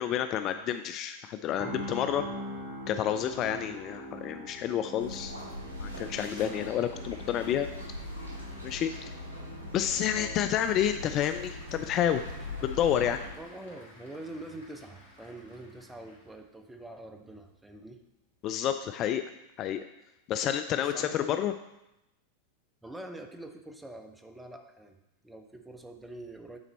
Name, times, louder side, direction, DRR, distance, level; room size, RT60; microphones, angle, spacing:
voice 1, 0.0-2.2 2.9-5.3 5.8-7.7 8.6-9.1 9.7-12.2 12.6-13.2 18.4-19.2 19.6-19.8 20.3-21.5, left 10 dB, 35° left, 9 dB, 0.3 m, -29 dB
sound 1, 1.6-15.6 15.9-16.2, equal, 30° right, 1.5 m, -45 dB
voice 2, 3.5-3.9 6.3-6.6 10.1-10.4 13.4-18.0 20.7-21.4 22.8-25.0 25.2-26.6, right 1 dB, 5° right, 5 dB, 0.7 m, -45 dB
sound 2, 5.0-13.3, left 1 dB, 80° right, 2.3 m, -41 dB
Applause / Crowd, 10.7-16.5, left 1 dB, 70° left, 2.7 m, -56 dB
8.8 x 4.0 x 4.3 m, 0.90 s
figure-of-eight pair, 90°, 0 cm